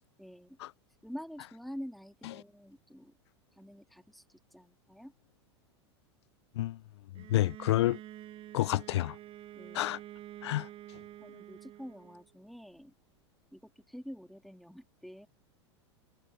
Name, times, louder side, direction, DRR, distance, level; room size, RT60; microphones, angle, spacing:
voice 1, 0.2-0.6 1.0-3.2 3.6-5.1 9.5-9.9 11.2-12.9 13.5-15.3, equal, ahead, 2.6 m, -47 dB
voice 2, 7.2-8.0 8.5-9.1 9.7-10.0 10.4-10.7, left 15 dB, 65° left, 0.4 m, -29 dB
Bowed string instrument, 7.2-12.3, right 13 dB, 40° right, 5.3 m, -48 dB
hypercardioid pair, 95°, 15 cm